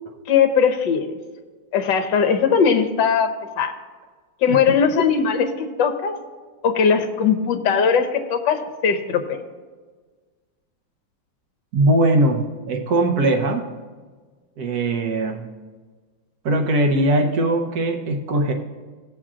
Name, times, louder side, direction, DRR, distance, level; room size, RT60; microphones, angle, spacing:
voice 1, 0.3-1.2 1.7-3.7 4.4-6.1 6.6-9.4, left 6 dB, 70° left, 8 dB, 1.5 m, -19 dB
voice 2, 11.7-13.7 14.6-15.4 16.4-18.5, right 1 dB, 55° right, 3 dB, 1.3 m, -20 dB
18.5 x 7.3 x 2.5 m, 1.5 s
omnidirectional pair, 2.2 m